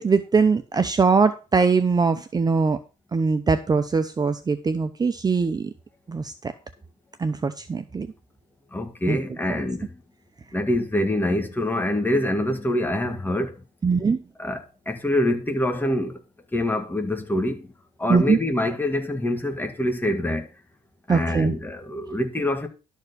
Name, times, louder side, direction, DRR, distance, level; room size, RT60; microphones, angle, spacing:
voice 1, 0.0-2.8 3.1-5.7 6.1-6.5 7.2-8.1 9.1-9.2 13.8-14.2 18.1-18.4 21.1-21.5, right 4 dB, 25° right, 0.8 m, -21 dB
voice 2, 8.7-10.0 10.5-13.6 14.4-16.2 16.5-17.7 18.0-20.5 21.1-22.7, left 1 dB, 10° left, 1.9 m, -25 dB
12.0 x 4.5 x 6.8 m
cardioid pair, 110°, 17 cm